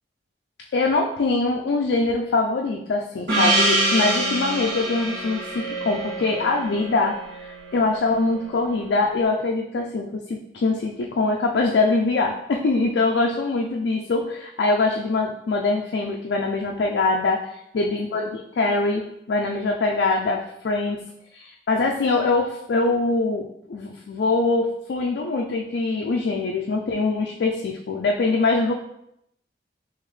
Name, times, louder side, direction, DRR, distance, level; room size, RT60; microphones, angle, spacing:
voice 1, 0.7-21.0 21.3-28.7, left 3 dB, 70° left, 1 dB, 0.4 m, -23 dB
Gong, 3.3-8.0, right 2 dB, 80° right, 1.3 m, -25 dB
3.7 x 2.9 x 3.1 m, 0.78 s
head